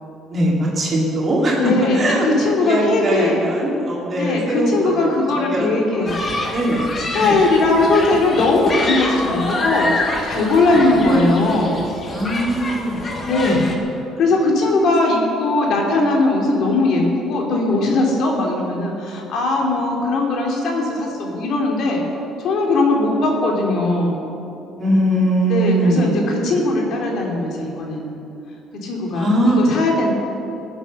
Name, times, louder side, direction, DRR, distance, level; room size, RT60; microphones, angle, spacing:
voice 1, 0.3-1.6 1.9-2.3 2.6-5.1 5.3-5.7 6.2-6.9 7.1-7.4 10.8-11.2 12.1-13.1 13.4-13.6 24.8-26.2 29.1-29.6, right 1 dB, 25° right, -4 dB, 3.0 m, -21 dB
voice 2, 1.5-3.5 4.1-6.1 7.1-11.9 13.2-13.7 14.2-22.0 22.4-24.2 25.5-28.1 28.7-30.1, left 2 dB, 55° left, -1 dB, 2.7 m, -19 dB
Human group actions, 6.1-13.8, left 2 dB, 25° left, 1.4 m, -26 dB
18.5 x 7.9 x 6.5 m, 2.7 s
cardioid pair, 170°, 0 cm